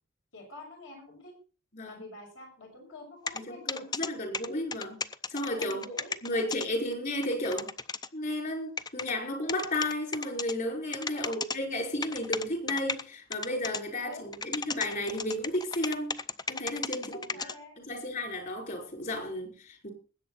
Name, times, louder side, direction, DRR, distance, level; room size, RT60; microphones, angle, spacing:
voice 1, 0.3-1.3 1.8-3.8 5.5-6.4 11.1-11.4 14.0-14.3 16.9-17.8, left 2 dB, 70° left, 1 dB, 6.1 m, -47 dB
sound 1, 3.3-3.4 3.7-4.1 4.3-6.7 6.9-7.0 7.2-8.1 8.8-9.1 9.5-10.5 10.9-11.6 12.0-13.0 13.3-13.8 14.1-17.5, left 4 dB, 20° left, 0.6 m, -34 dB
voice 2, 3.5-5.0 5.3-5.8 6.2-7.7 8.1-16.2 16.5-17.5 17.9-19.9, left 1 dB, 45° left, 2 dB, 5.2 m, -33 dB
20.5 x 8.6 x 4.1 m, 0.37 s
head